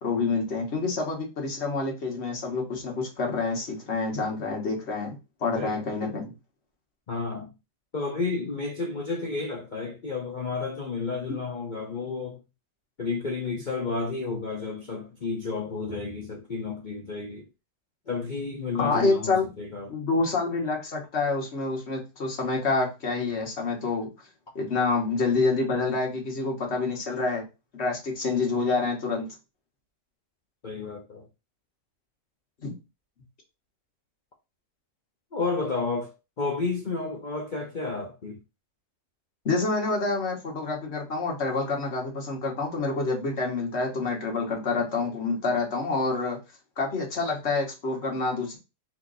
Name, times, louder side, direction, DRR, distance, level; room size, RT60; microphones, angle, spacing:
voice 1, 0.0-6.3 18.8-19.5 19.9-24.1 24.5-27.4 27.7-29.3 32.6-32.8 39.4-46.4 46.8-48.6, left 3 dB, 40° left, 1.5 m, -27 dB
voice 2, 7.1-7.5 7.9-12.4 13.0-17.5 18.1-19.9 30.6-31.3 35.3-38.4, left 4 dB, 60° left, 0.4 m, -31 dB
4.4 x 2.9 x 4.0 m
omnidirectional pair, 1.8 m